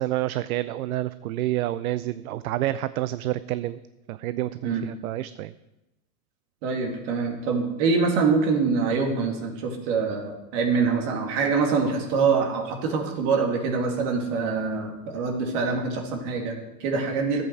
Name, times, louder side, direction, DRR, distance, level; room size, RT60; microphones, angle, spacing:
voice 1, 0.0-3.8 4.1-5.5, right 14 dB, 70° right, 15 dB, 0.5 m, -28 dB
voice 2, 6.6-17.4, right 4 dB, 50° right, 2 dB, 2.6 m, -25 dB
12.5 x 8.2 x 4.7 m, 0.99 s
hypercardioid pair, 115°, 45 cm